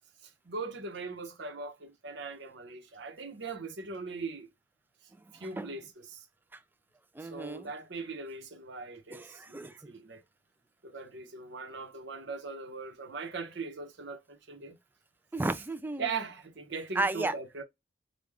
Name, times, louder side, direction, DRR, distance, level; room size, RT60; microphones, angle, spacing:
voice 1, 0.2-4.5 5.3-6.2 7.2-10.2 10.8-14.8 16.0-17.6, right 4 dB, 70° right, 0.9 m, -40 dB
voice 2, 7.2-7.7 9.1-9.9 15.3-16.1 17.0-17.3, right 2 dB, 10° right, 0.3 m, -33 dB
3.4 x 2.3 x 3.4 m
head